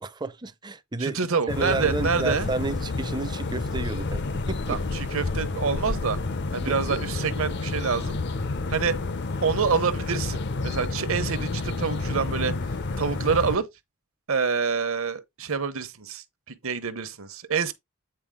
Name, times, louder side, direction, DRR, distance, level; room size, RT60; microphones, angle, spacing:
voice 1, 0.0-1.2 1.5-4.8 6.7-7.0, right 3 dB, 20° right, 0.5 m, -31 dB
voice 2, 1.0-2.5 4.7-6.2 6.5-8.2 8.7-9.0 9.4-12.5 13.0-13.7 14.3-17.7, right 5 dB, 65° right, 1.0 m, -27 dB
sound 1, 1.5-13.6, left 3 dB, 50° left, 0.6 m, -30 dB
8.8 x 4.4 x 3.6 m
head